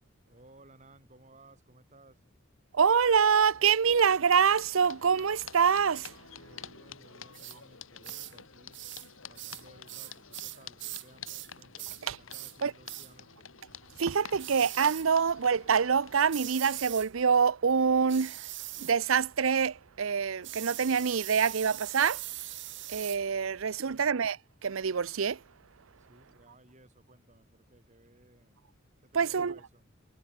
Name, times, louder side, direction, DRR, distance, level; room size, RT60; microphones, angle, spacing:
voice 1, 0.2-2.2 6.3-8.8 9.3-13.5 23.7-24.1 26.0-28.6 29.0-29.8, right 2 dB, 35° right, 6.2 m, -59 dB
voice 2, 2.7-6.1 12.1-12.2 12.6-12.7 14.0-18.5 18.8-22.2 22.9-24.4 24.6-25.4 29.1-29.6, right 6 dB, 75° right, 0.6 m, -26 dB
sound 1, 3.8-16.5, left 7 dB, 75° left, 4.7 m, -49 dB
sound 2, 7.3-7.6 8.0-8.4 8.7-9.1 9.4-11.5 11.8-12.0 12.3-12.6 12.9-13.1 14.4-15.1 16.3-17.1 18.1-19.0 20.4-23.2, right 16 dB, 60° right, 2.0 m, -41 dB
head